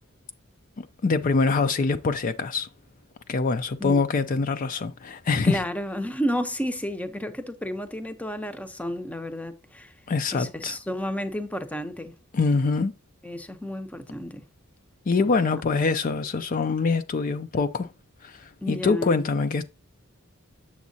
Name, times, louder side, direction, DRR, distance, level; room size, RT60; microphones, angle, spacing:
voice 1, 0.8-2.7 3.3-5.6 10.1-10.8 12.3-12.9 15.1-17.9 18.2-19.7, left 4 dB, 40° left, 0.4 m, -24 dB
voice 2, 5.4-9.9 10.3-12.1 13.2-14.4 18.6-19.2, equal, 5° left, 0.6 m, -31 dB
7.2 x 7.1 x 2.7 m
head